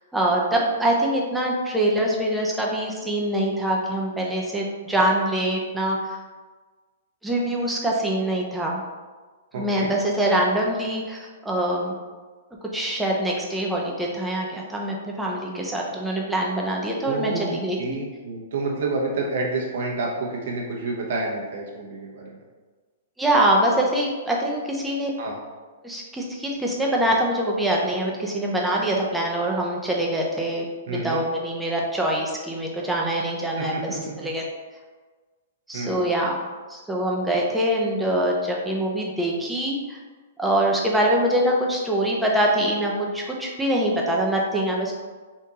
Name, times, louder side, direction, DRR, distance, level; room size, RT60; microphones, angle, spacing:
voice 1, 0.1-6.2 7.2-8.8 9.5-11.9 12.7-18.0 23.2-25.1 25.8-33.8 34.2-34.4 35.7-36.4 36.7-40.0 40.4-44.9, right 1 dB, 5° right, -2 dB, 0.6 m, -24 dB
voice 2, 9.5-9.9 17.0-22.4 25.2-25.4 30.9-31.2 33.6-34.0 35.7-36.0, right 3 dB, 65° right, -1 dB, 0.7 m, -29 dB
3.7 x 2.6 x 2.8 m, 1.4 s
hypercardioid pair, 140°, 0 cm